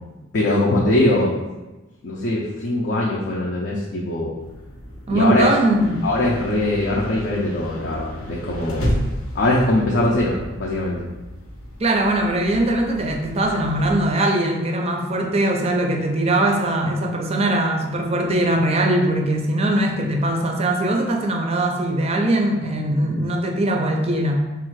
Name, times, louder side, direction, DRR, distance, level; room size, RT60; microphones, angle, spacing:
voice 1, 0.3-1.3 2.0-4.3 5.1-5.5 6.0-8.9 9.3-11.0, left 1 dB, 55° left, -4 dB, 0.5 m, -21 dB
sound 1, 4.4-14.0, equal, 80° left, 0.8 m, -32 dB
voice 2, 5.1-6.1 11.8-24.5, right 1 dB, 30° right, 2 dB, 0.5 m, -21 dB
3.6 x 2.4 x 4.6 m, 1.1 s
head